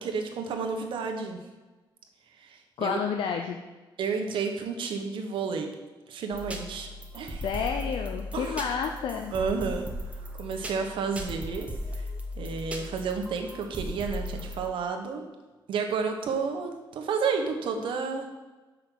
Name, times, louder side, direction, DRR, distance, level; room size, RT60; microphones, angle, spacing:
voice 1, 0.0-1.4 2.4-3.0 4.0-5.7 6.1-7.5 8.3-8.6 9.3-9.9 10.3-12.1 12.3-15.3 15.7-18.3, right 5 dB, 80° right, 4 dB, 1.1 m, -31 dB
voice 2, 2.8-3.6 7.4-9.3, left 6 dB, 85° left, 4 dB, 0.6 m, -30 dB
sound 1, 6.3-14.7, left 1 dB, 15° right, 1.0 m, -37 dB
6.5 x 5.2 x 6.1 m, 1.2 s
wide cardioid pair, 160°, 9 cm